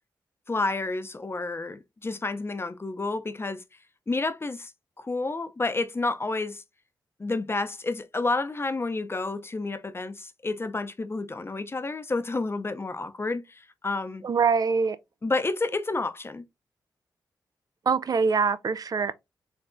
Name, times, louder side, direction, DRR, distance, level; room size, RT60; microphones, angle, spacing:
voice 1, 0.5-3.6 4.1-4.7 5.0-6.6 7.2-14.2 15.2-16.4, left 3 dB, 30° left, 0.6 m, -30 dB
voice 2, 14.2-15.0 17.9-19.1, right 5 dB, 50° right, 0.4 m, -24 dB
3.8 x 3.3 x 2.6 m
cardioid pair, 50°, 8 cm